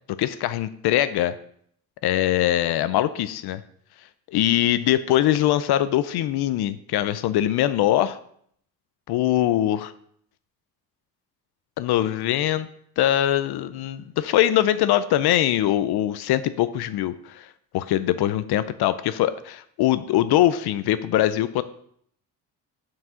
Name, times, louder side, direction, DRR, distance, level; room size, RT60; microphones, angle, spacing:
voice 1, 0.1-1.4 2.0-3.6 4.3-8.2 9.1-9.9 11.8-12.7 13.0-21.6, left 12 dB, 75° left, 14 dB, 0.5 m, -22 dB
6.1 x 4.8 x 5.6 m, 0.65 s
cardioid pair, 105°, 39 cm